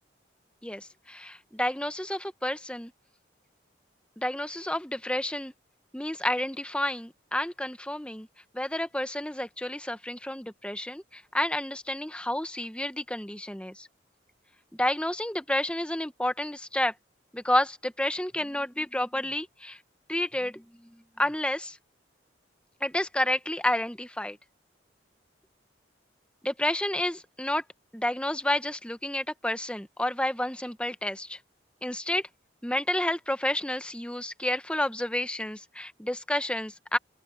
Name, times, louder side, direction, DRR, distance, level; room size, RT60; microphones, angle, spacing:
voice 1, 0.6-2.9 4.2-5.5 5.9-8.3 8.5-13.9 14.8-16.9 17.3-19.8 20.1-20.9 21.2-21.8 22.8-24.4 26.4-27.6 27.9-31.4 31.8-32.2 32.6-37.0, left 1 dB, 5° left, 1.0 m, -30 dB
open air
head